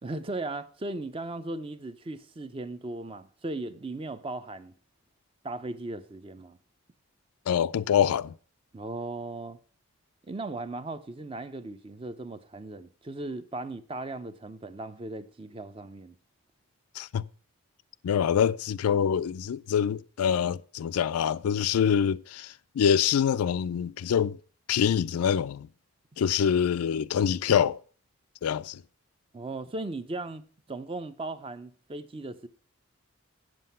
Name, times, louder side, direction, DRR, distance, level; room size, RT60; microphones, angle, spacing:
voice 1, 0.0-4.7 5.4-6.6 8.7-9.6 10.2-16.2 29.3-32.5, right 2 dB, 25° right, 0.5 m, -37 dB
voice 2, 7.5-8.3 17.0-17.3 18.0-24.4 24.7-25.7 26.2-27.8 28.4-28.8, left 8 dB, 85° left, 0.3 m, -25 dB
8.3 x 7.7 x 5.4 m
head